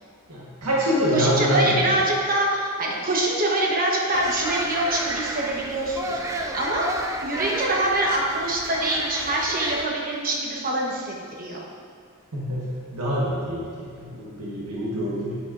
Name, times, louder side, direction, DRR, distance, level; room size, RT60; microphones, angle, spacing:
voice 1, 0.3-1.8 12.3-15.3, equal, 85° right, -6 dB, 1.4 m, -25 dB
voice 2, 1.1-6.9 7.2-11.6, right 1 dB, 40° right, -2 dB, 1.1 m, -24 dB
sound 1, 4.1-9.8, right 1 dB, 15° right, 0.4 m, -32 dB
8.6 x 8.2 x 2.6 m, 2.1 s
head